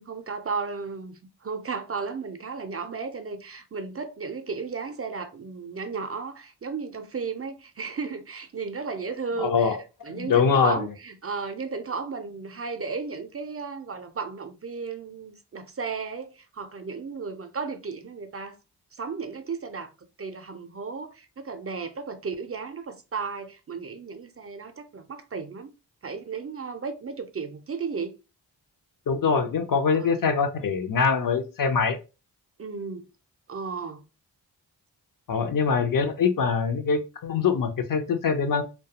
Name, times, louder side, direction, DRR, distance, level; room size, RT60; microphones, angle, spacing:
voice 1, 0.0-9.8 10.0-18.6 18.9-19.9 20.2-25.7 26.0-28.2 29.9-30.3 32.6-33.0 33.5-34.0, right 5 dB, 35° right, 0.5 m, -34 dB
voice 2, 9.4-9.8 10.1-10.9 29.1-32.0 35.3-38.6, left 5 dB, 50° left, 0.6 m, -23 dB
2.3 x 2.2 x 2.8 m
supercardioid pair, 40°, 43 cm